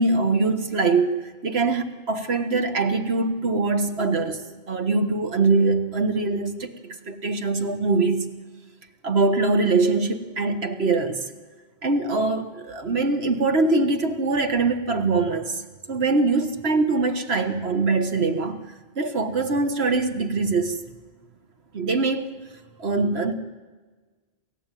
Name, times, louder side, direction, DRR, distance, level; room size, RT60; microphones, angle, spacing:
voice 1, 0.0-4.4 4.7-8.3 9.0-11.3 11.8-15.6 15.9-18.6 19.0-20.8 21.7-22.3 22.8-23.3, right 3 dB, 75° right, 7 dB, 1.7 m, -23 dB
29.0 x 14.0 x 9.2 m, 1.4 s
omnidirectional pair, 1.1 m